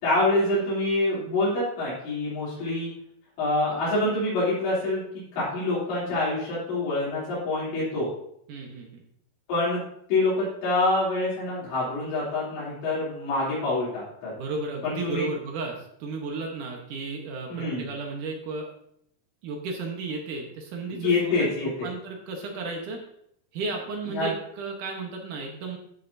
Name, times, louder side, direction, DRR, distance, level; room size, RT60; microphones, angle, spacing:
voice 1, 0.0-2.9 3.4-5.0 5.3-8.1 9.5-9.8 10.1-14.3 14.8-15.2 17.5-17.9 20.9-21.9 24.1-24.3, left 2 dB, 80° left, -10 dB, 5.4 m, -26 dB
voice 2, 8.5-9.0 14.4-18.7 19.4-23.0 23.5-25.8, right 3 dB, 65° right, 2 dB, 2.1 m, -34 dB
13.5 x 7.5 x 2.7 m, 0.71 s
omnidirectional pair, 5.1 m